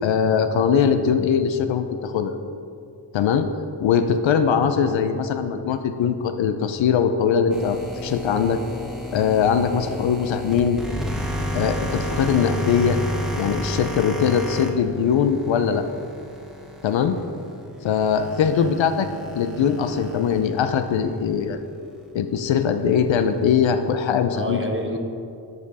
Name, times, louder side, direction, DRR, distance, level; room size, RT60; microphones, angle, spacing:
voice 1, 0.0-2.3 3.1-3.5 3.8-8.6 9.1-10.8 11.5-13.0 13.4-15.9 16.8-17.2 17.8-19.1 19.3-21.6 22.1-24.7, left 7 dB, 70° left, 8 dB, 0.7 m, -21 dB
sound 1, 7.5-21.6 22.0-22.1 22.7-23.9, equal, ahead, 1.1 m, -32 dB
voice 2, 24.3-25.0, equal, 25° right, 2 dB, 1.3 m, -30 dB
11.0 x 5.1 x 4.1 m, 2.5 s
supercardioid pair, 45°, 48 cm